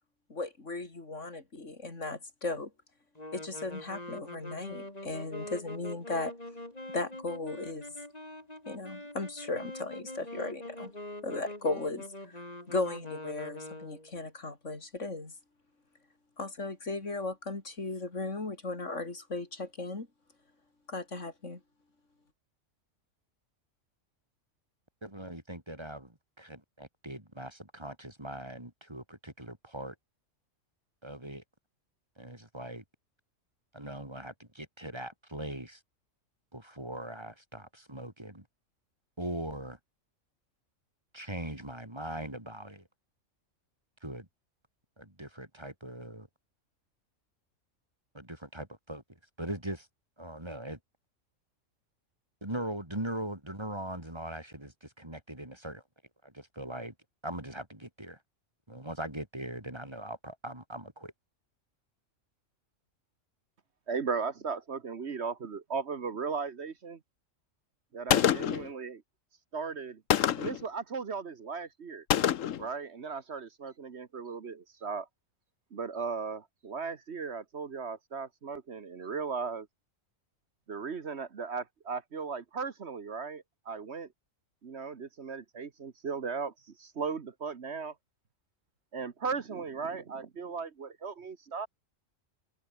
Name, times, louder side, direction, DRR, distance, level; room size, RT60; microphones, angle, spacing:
voice 1, 0.3-2.7 3.3-6.3 6.9-7.9 8.7-10.9 11.2-12.4 12.7-15.3 16.4-20.1 20.9-21.6, left 3 dB, 70° left, 4.0 m, -36 dB
sound 1, 3.1-14.1, left 1 dB, 30° left, 4.9 m, -44 dB
voice 2, 25.0-29.9 31.0-31.4 32.2-32.8 33.7-35.8 36.5-38.4 39.2-39.8 41.1-42.8 44.0-44.3 45.0-46.3 48.1-49.0 49.4-49.9 50.2-50.8 52.4-55.8 56.2-56.9 57.2-58.2 58.7-61.1, right 1 dB, 20° right, 3.4 m, -40 dB
voice 3, 63.9-67.0 67.9-69.0 69.5-70.0 70.4-72.0 72.6-75.1 75.7-79.7 80.7-84.1 84.6-87.9 88.9-91.7, right 5 dB, 60° right, 1.5 m, -37 dB
Gunshot gunfire, 68.1-68.7 70.1-70.6 72.1-72.7, left 10 dB, 90° left, 1.2 m, -26 dB
omnidirectional pair, 1.3 m